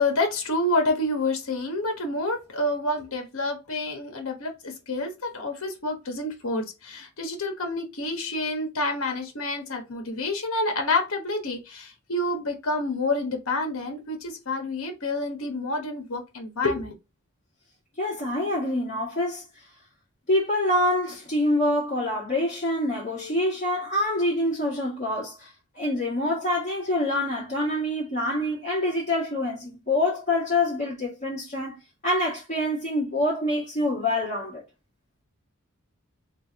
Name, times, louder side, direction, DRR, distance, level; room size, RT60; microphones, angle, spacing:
voice 1, 0.0-16.9, left 2 dB, 65° left, 1.1 m, -28 dB
voice 2, 18.0-19.4 20.3-25.5 25.7-34.6, left 1 dB, 30° left, 1.5 m, -26 dB
3.3 x 2.5 x 4.0 m
head